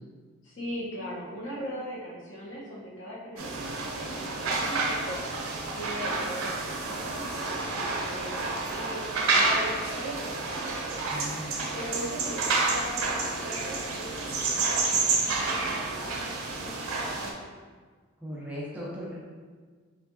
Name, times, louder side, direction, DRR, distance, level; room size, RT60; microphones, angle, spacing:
voice 1, 0.4-5.2 5.8-10.6 11.7-17.3, equal, 60° left, -6 dB, 1.2 m, -39 dB
sound 1, 3.4-17.3, right 3 dB, 90° right, 0.6 m, -29 dB
voice 2, 11.1-11.6 18.2-19.2, equal, 5° right, -6 dB, 0.6 m, -37 dB
4.4 x 3.3 x 2.8 m, 1.5 s
head